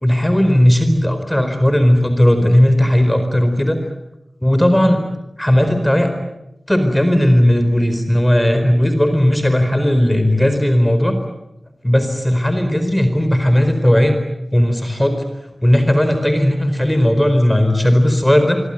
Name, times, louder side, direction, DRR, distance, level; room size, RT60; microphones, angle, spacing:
voice 1, 0.0-3.8 4.4-5.0 5.4-6.1 6.7-11.1 11.8-14.2 14.5-15.2 15.6-18.6, left 1 dB, 10° left, 7 dB, 4.5 m, -15 dB
25.5 x 24.0 x 9.2 m, 0.92 s
wide cardioid pair, 55°, 0 cm